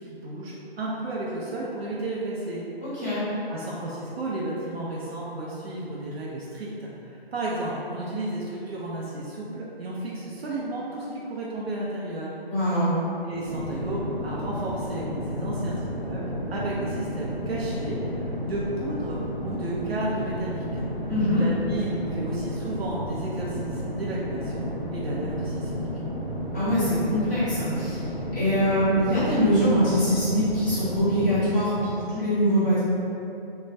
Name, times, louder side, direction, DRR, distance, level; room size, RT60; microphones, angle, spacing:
voice 1, 0.0-2.6 3.5-12.3 13.2-20.9 21.3-25.9, right 1 dB, 70° right, -5 dB, 0.6 m, -33 dB
voice 2, 2.8-3.2 12.4-13.0 21.1-21.4 26.5-28.0 28.3-32.8, equal, 15° left, -13 dB, 1.2 m, -23 dB
sound 1, 13.4-31.4, equal, 5° right, 0.8 m, -32 dB
2.5 x 2.2 x 3.2 m, 2.8 s
hypercardioid pair, 170°, 31 cm